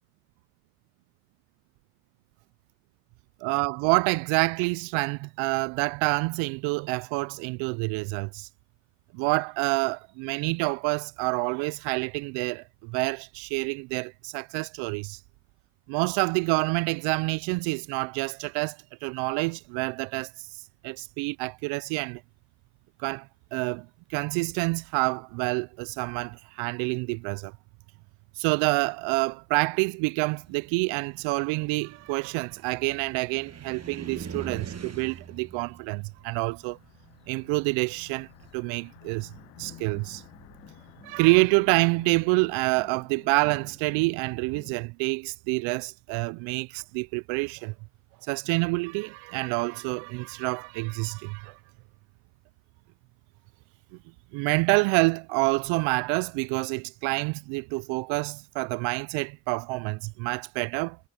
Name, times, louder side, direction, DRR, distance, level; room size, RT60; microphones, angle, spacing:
voice 1, 3.4-8.5 9.1-15.2 15.9-20.3 20.8-22.2 23.0-27.5 28.4-36.8 37.3-38.3 38.5-39.3 39.6-40.2 41.0-47.7 48.3-51.6 54.3-61.0, right 28 dB, 85° right, 0.5 m, -27 dB
Car, 30.3-38.6, right 6 dB, 35° right, 1.4 m, -44 dB
sound 1, 35.7-44.3, left 21 dB, 85° left, 0.9 m, -54 dB
sound 2, 39.3-44.8, left 3 dB, 25° left, 4.9 m, -53 dB
hypercardioid pair, 45°, 46 cm